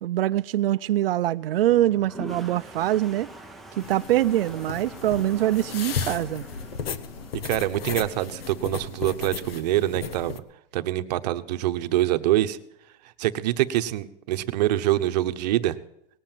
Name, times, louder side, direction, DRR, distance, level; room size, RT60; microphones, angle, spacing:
voice 1, 0.0-3.3 3.8-6.4, right 13 dB, 75° right, 0.5 m, -24 dB
Toilet flush, 1.7-7.8, right 2 dB, ahead, 0.6 m, -43 dB
sound 1, 3.8-10.4, left 6 dB, 90° left, 1.2 m, -35 dB
voice 2, 7.4-10.4 10.7-12.6 13.2-15.8, right 14 dB, 45° right, 1.0 m, -25 dB
19.0 x 7.7 x 9.0 m
supercardioid pair, 155°, 29 cm